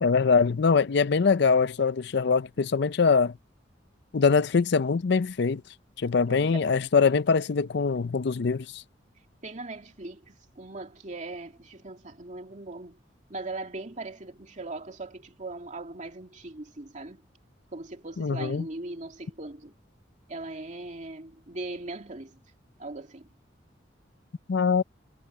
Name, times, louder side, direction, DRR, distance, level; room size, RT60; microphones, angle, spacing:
voice 1, 0.0-3.3 4.1-5.6 6.0-8.8 18.2-18.6 24.5-24.8, left 5 dB, 65° left, 0.5 m, -23 dB
voice 2, 6.3-6.7 9.4-13.0 13.3-17.2 17.7-19.7 20.3-22.4 22.8-23.3, right 2 dB, 45° right, 2.3 m, -39 dB
head